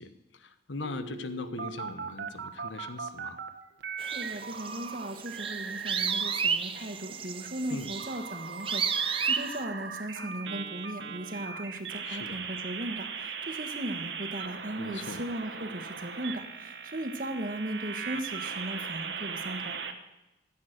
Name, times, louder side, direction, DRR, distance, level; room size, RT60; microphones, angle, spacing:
voice 1, 0.0-3.4 7.7-7.9 12.0-12.5 14.8-15.2, left 3 dB, 90° left, 11 dB, 1.1 m, -40 dB
Dial-up sound, 0.8-3.5 3.8-6.4 6.8-19.9, right 6 dB, 80° right, 1.3 m, -39 dB
sound 1, 4.0-9.6, right 6 dB, 30° right, 0.7 m, -32 dB
voice 2, 4.0-19.8, right 1 dB, 50° right, 6 dB, 1.4 m, -37 dB
14.5 x 7.5 x 7.8 m, 1.0 s
head